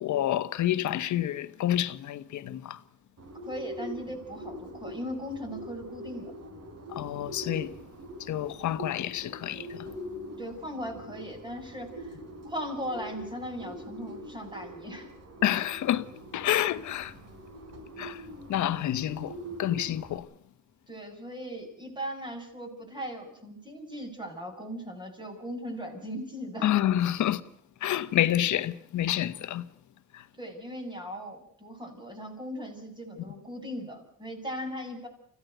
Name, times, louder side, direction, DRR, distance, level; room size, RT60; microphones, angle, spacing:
voice 1, 0.0-2.8 6.9-7.7 8.2-9.9 15.4-17.2 18.0-20.3 26.6-27.4 27.8-29.7 30.1-30.3, left 12 dB, 75° left, 1.3 m, -28 dB
Bird, 3.2-20.2, equal, 55° right, 4.7 m, -43 dB
voice 2, 3.5-6.3 10.4-12.2 12.5-15.1 20.9-26.7 30.4-35.1, equal, 15° right, 7.6 m, -38 dB
25.5 x 16.0 x 8.0 m
cardioid pair, 90°, 30 cm